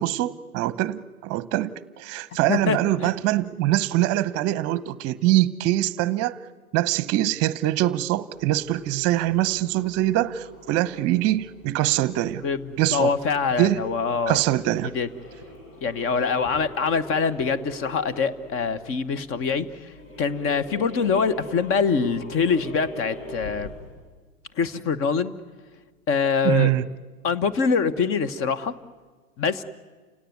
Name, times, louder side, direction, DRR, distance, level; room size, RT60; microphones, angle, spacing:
voice 1, 0.0-6.4 6.7-12.4 12.8-13.1 13.6-13.8 14.3-14.9 26.4-26.8, right 15 dB, 35° right, 1.0 m, -23 dB
voice 2, 2.5-3.1 12.4-12.6 12.9-14.4 14.9-15.1 15.8-19.9 20.2-23.7 24.6-25.3 26.1-26.7 27.2-28.7 29.4-29.6, left 5 dB, 30° left, 1.3 m, -24 dB
sound 1, 8.3-24.0, equal, 60° left, 7.7 m, -43 dB
29.5 x 17.5 x 9.6 m
figure-of-eight pair, 95°, 43 cm